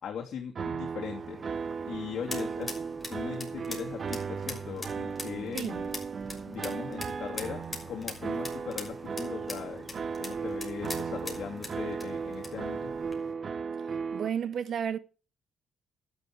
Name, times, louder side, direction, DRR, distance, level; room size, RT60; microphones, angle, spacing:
voice 1, 0.0-1.4 1.9-2.7 3.1-6.0 6.4-9.9 10.2-12.9, left 7 dB, 60° left, 2.9 m, -39 dB
sound 1, 0.5-14.3, right 5 dB, 45° right, 1.1 m, -36 dB
sound 2, 1.0-13.3, right 1 dB, 15° right, 3.2 m, -51 dB
sound 3, 1.5-13.2, left 2 dB, 15° left, 6.1 m, -44 dB
voice 2, 14.1-15.0, right 8 dB, 60° right, 1.5 m, -32 dB
12.0 x 10.5 x 4.9 m
supercardioid pair, 75°, 0 cm